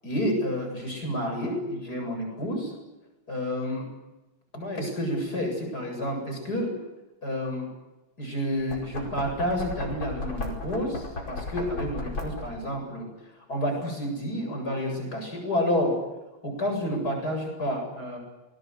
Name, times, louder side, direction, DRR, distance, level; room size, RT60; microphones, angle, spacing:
voice 1, 0.0-2.7 3.3-3.9 4.5-6.7 7.2-7.7 8.2-13.1 13.3-16.0 16.4-18.2, equal, 50° left, 3 dB, 8.6 m, -29 dB
Knock, 8.5-12.7, left 2 dB, 85° left, 6.0 m, -35 dB
28.0 x 21.5 x 8.3 m, 1.0 s
omnidirectional pair, 2.1 m